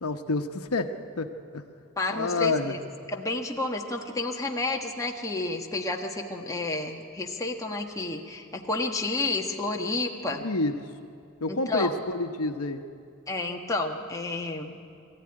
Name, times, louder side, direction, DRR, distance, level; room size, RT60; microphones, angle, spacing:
voice 1, 0.0-1.6 2.1-2.8 10.4-10.7 11.4-12.8, left 3 dB, 80° left, 6 dB, 1.1 m, -28 dB
voice 2, 2.0-2.8 3.1-10.4 11.5-11.9 13.3-14.8, left 2 dB, 15° left, 1 dB, 1.4 m, -30 dB
22.0 x 14.5 x 9.9 m, 2.4 s
head